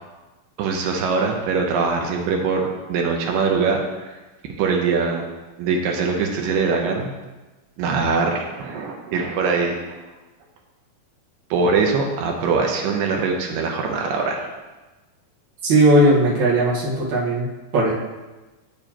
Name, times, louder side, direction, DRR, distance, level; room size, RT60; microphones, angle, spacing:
voice 1, 0.6-4.1 4.6-5.3 5.6-7.1 7.8-10.0 11.5-14.4, right 4 dB, 80° right, 1 dB, 2.2 m, -22 dB
voice 2, 15.6-17.5 17.7-17.9, right 1 dB, 55° right, -6 dB, 2.5 m, -17 dB
7.7 x 7.1 x 2.9 m, 1.2 s
omnidirectional pair, 4.5 m